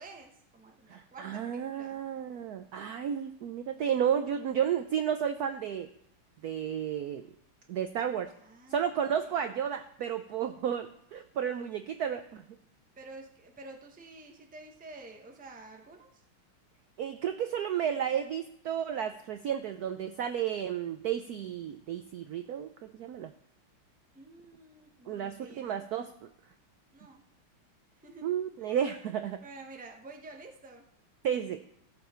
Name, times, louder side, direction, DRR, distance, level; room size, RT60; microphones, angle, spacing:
voice 1, 0.0-2.0 8.4-9.4 13.0-16.2 24.1-25.8 26.9-27.2 28.0-28.3 28.6-28.9 29.4-30.9, right 2 dB, 10° right, 2 dB, 0.5 m, -50 dB
voice 2, 0.9-5.9 6.4-7.2 7.7-8.3 8.7-12.4 17.0-23.3 25.1-26.3 28.2-29.4 31.2-31.6, right 9 dB, 85° right, 8 dB, 0.8 m, -32 dB
16.0 x 7.1 x 4.4 m, 0.72 s
omnidirectional pair, 2.3 m